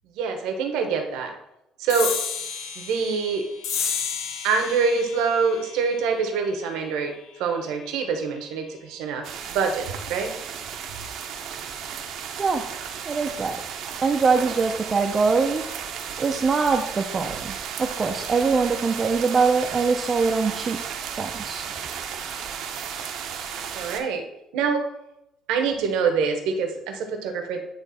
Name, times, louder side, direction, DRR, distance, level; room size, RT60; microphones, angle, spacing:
voice 1, 0.2-1.3 1.8-2.1 2.8-3.5 4.4-7.1 7.4-10.3 23.7-24.2 24.5-24.9 25.5-27.6, right 5 dB, 90° right, 5 dB, 1.1 m, -25 dB
sound 1, 1.9-8.7, left 7 dB, 85° left, 0.9 m, -33 dB
sound 2, 9.2-24.0, right 7 dB, 70° right, 0.8 m, -34 dB
voice 2, 13.1-13.6 14.0-15.6 16.2-20.8 21.2-21.7, right 4 dB, 30° right, 2 dB, 0.6 m, -23 dB
9.2 x 3.2 x 4.2 m, 0.85 s
cardioid pair, 110°, 0 cm